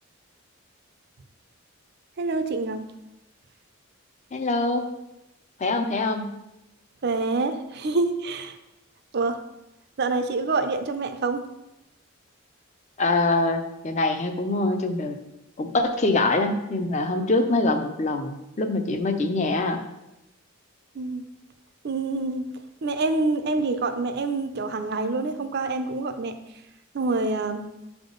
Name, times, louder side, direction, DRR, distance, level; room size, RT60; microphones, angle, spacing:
voice 1, 2.2-2.9 7.0-8.6 9.1-9.4 10.0-11.5 21.0-21.3 21.8-22.4 22.8-26.4 26.9-27.7, right 3 dB, 50° right, 8 dB, 0.5 m, -26 dB
voice 2, 4.3-4.9 5.6-6.4 13.0-15.2 15.6-19.8, left 2 dB, 35° left, 7 dB, 0.5 m, -24 dB
7.0 x 3.5 x 3.8 m, 0.92 s
head